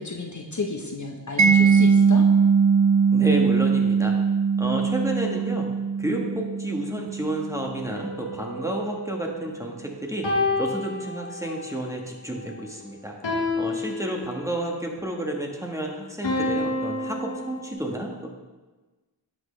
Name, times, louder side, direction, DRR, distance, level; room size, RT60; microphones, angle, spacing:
voice 1, 0.0-2.3, left 3 dB, 45° left, 1 dB, 1.1 m, -32 dB
Mallet percussion, 1.4-8.2, right 6 dB, 40° right, 0.6 m, -21 dB
voice 2, 3.1-4.1 4.6-5.7 6.0-10.3 10.6-13.2 13.6-18.3, right 1 dB, 5° right, 0 dB, 1.4 m, -30 dB
sound 1, 7.9-9.6 10.2-11.7 13.2-14.7 16.2-17.7, left 2 dB, 85° left, 1.6 m, -29 dB
10.5 x 6.1 x 3.3 m, 1.2 s
cardioid pair, 45°, 42 cm